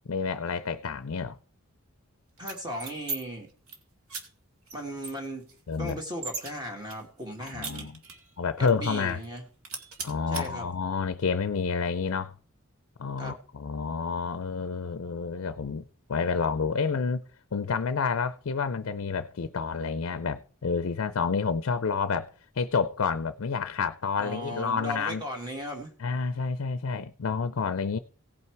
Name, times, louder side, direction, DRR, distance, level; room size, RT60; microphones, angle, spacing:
voice 1, 0.1-1.4 5.7-6.0 7.4-8.0 8.4-9.2 10.0-12.3 13.0-17.2 17.5-22.3 22.6-25.2 26.0-28.0, left 5 dB, 60° left, 0.5 m, -29 dB
voice 2, 2.4-3.5 4.7-5.5 5.8-7.9 8.6-9.5 10.3-10.7 13.2-13.4 24.2-25.9, equal, 20° right, 1.8 m, -37 dB
sound 1, 2.4-3.2 3.5-3.8 4.1-4.2 4.7-4.8 5.0-6.5 6.9-8.3 8.7-8.8 9.1-9.4 9.6-10.4, right 4 dB, 75° right, 2.1 m, -37 dB
17.0 x 5.7 x 4.6 m
head